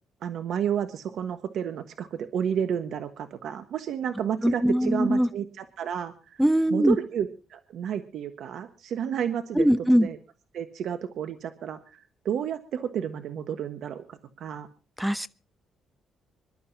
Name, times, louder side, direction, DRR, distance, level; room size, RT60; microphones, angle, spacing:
voice 1, 0.2-6.4 6.7-9.7 9.9-10.2 10.5-14.7, right 8 dB, 70° right, 1.3 m, -31 dB
voice 2, 4.4-5.3 6.4-7.0 9.6-10.1 15.0-15.3, equal, 5° right, 0.7 m, -21 dB
26.0 x 12.0 x 2.8 m
cardioid pair, 90°, 0 cm